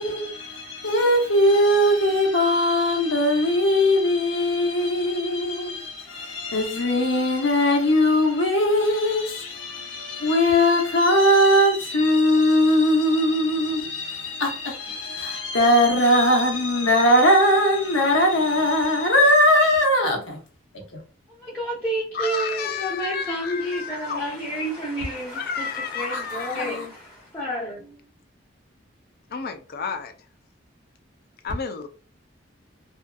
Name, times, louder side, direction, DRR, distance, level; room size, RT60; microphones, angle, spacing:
voice 1, 0.0-20.4 20.7-21.0 26.0-26.9, left 1 dB, 85° left, 0.9 m, -20 dB
voice 2, 21.3-28.1, right 1 dB, 5° left, 0.7 m, -30 dB
voice 3, 22.1-24.2 25.3-26.8 29.3-30.1 31.4-31.9, left 5 dB, 55° left, 0.4 m, -31 dB
2.6 x 2.5 x 2.3 m
head